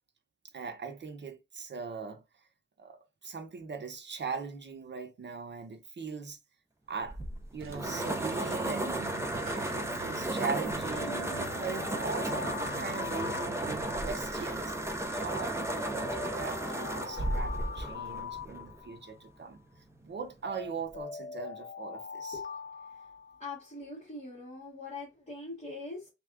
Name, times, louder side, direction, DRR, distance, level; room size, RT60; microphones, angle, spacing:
voice 1, 0.5-2.2 2.8-6.4 6.9-7.2 7.5-14.8 15.1-19.6 20.0-22.4, right 5 dB, 60° right, 0.9 m, -40 dB
sound 1, 7.0-18.9, right 1 dB, 15° right, 0.6 m, -34 dB
sound 2, 7.6-14.1, right 8 dB, 85° right, 0.6 m, -47 dB
Alarm, 11.0-14.3 15.4-19.3 20.4-23.7, left 5 dB, 70° left, 0.9 m, -42 dB
voice 2, 23.4-26.1, left 3 dB, 30° left, 1.9 m, -42 dB
3.3 x 2.5 x 3.5 m
wide cardioid pair, 130°, 20 cm